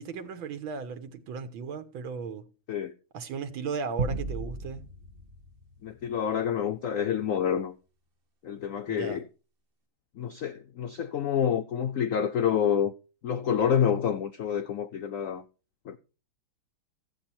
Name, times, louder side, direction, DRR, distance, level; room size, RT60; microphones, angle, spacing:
voice 1, 0.0-2.5 3.1-4.9 8.9-9.2, right 5 dB, 85° right, 1.9 m, -36 dB
sound 1, 4.0-6.6, right 3 dB, 45° right, 0.8 m, -36 dB
voice 2, 5.8-7.7 8.4-9.2 10.2-12.9 13.2-15.4 15.9-16.0, left 8 dB, 85° left, 0.7 m, -28 dB
14.0 x 8.3 x 4.3 m
omnidirectional pair, 2.2 m